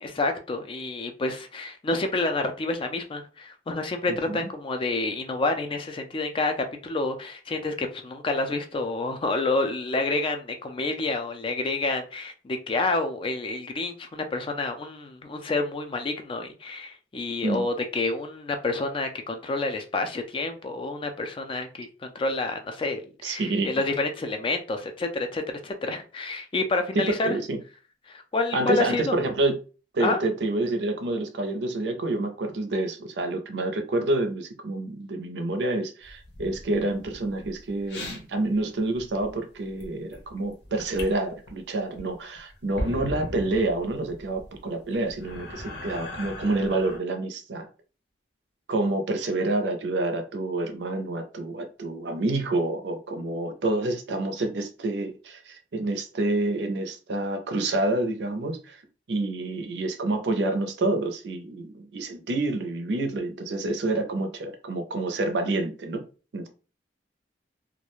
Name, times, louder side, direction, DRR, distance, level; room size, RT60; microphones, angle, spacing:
voice 1, 0.0-6.5 6.8-27.4 28.1-29.2 30.0-30.2, left 3 dB, 30° left, 0.3 m, -29 dB
voice 2, 4.1-4.5 17.4-17.7 23.2-23.7 27.0-27.6 28.5-29.6 29.9-47.7 48.7-58.8 59.1-66.0 66.3-66.5, right 2 dB, 70° right, 0.5 m, -28 dB
sound 1, 36.0-38.2 38.6-38.7 39.0-39.3 39.7-41.1 41.5-41.6 42.0-47.0, left 1 dB, 75° left, 0.7 m, -38 dB
2.3 x 2.1 x 3.0 m
head